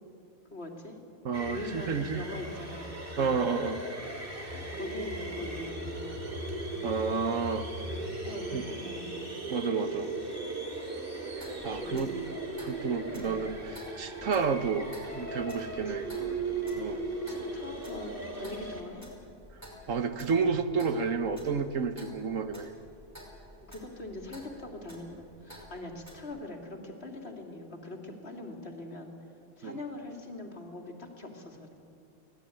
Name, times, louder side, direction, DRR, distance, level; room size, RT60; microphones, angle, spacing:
voice 1, 0.5-1.0 1.5-2.9 3.1-3.4 4.5-6.4 7.8-9.1 11.8-12.2 13.1-13.4 15.9-16.4 17.3-19.1 23.7-29.1 29.6-31.7, left 2 dB, 50° left, 2 dB, 2.9 m, -42 dB
voice 2, 1.2-2.3 3.2-3.8 6.8-7.7 8.2-8.7 9.5-10.1 11.4-12.1 12.6-16.1 16.8-17.0 19.9-22.7 29.6-29.8, right 5 dB, 70° right, 9 dB, 1.5 m, -31 dB
sound 1, 1.3-18.8, right 2 dB, 40° right, 3.2 m, -37 dB
Clock, 11.3-26.2, equal, 10° right, 5.4 m, -51 dB
23.5 x 17.0 x 9.1 m, 2.7 s
omnidirectional pair, 1.4 m